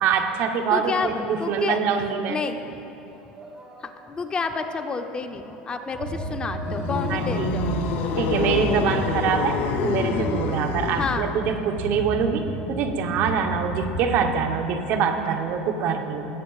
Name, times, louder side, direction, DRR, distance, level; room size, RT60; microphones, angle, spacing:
voice 1, 0.0-2.4 7.1-7.5 8.2-16.3, right 6 dB, 55° right, 5 dB, 0.9 m, -24 dB
voice 2, 0.7-1.1 1.4-2.6 3.8-7.8 11.0-11.3, left 4 dB, 25° left, 7 dB, 0.6 m, -30 dB
sound 1, 1.1-2.4 2.7-10.5, right 2 dB, 20° right, 1.6 m, -44 dB
sound 2, 5.9-14.3, right 1 dB, 75° right, 2.0 m, -32 dB
sound 3, 6.6-11.3, left 5 dB, 60° left, 0.7 m, -27 dB
19.0 x 8.2 x 2.4 m, 2.9 s
supercardioid pair, 110°, 4 cm